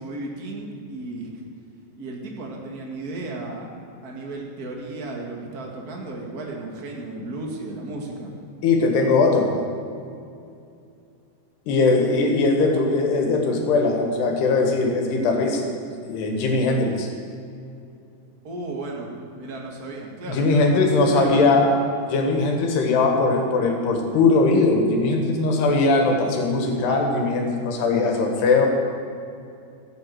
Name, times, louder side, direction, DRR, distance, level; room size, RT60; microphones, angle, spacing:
voice 1, 0.0-1.4 2.0-3.7 4.0-8.3 18.4-21.7, right 2 dB, 45° right, -1 dB, 1.1 m, -34 dB
voice 2, 8.6-9.5 11.7-15.7 16.0-17.1 20.3-21.7 22.1-28.7, left 3 dB, 75° left, 2 dB, 3.7 m, -20 dB
15.5 x 8.7 x 7.8 m, 2.5 s
omnidirectional pair, 4.9 m